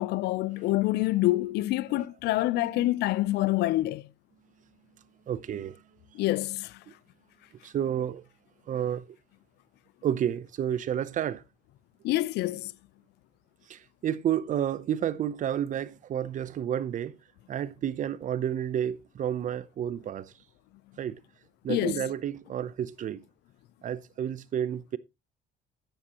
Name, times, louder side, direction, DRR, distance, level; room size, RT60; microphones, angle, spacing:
voice 1, 0.0-4.0 6.2-6.7 12.0-12.7 21.7-22.0, left 17 dB, 80° left, 0.5 m, -26 dB
voice 2, 2.6-2.9 5.3-5.8 7.6-8.2 8.7-9.0 10.0-11.4 13.7-17.2 17.5-20.3 21.0-21.2 21.6-23.2 23.8-25.0, right 10 dB, 50° right, 0.7 m, -31 dB
10.5 x 10.0 x 2.9 m
cardioid pair, 110°, 17 cm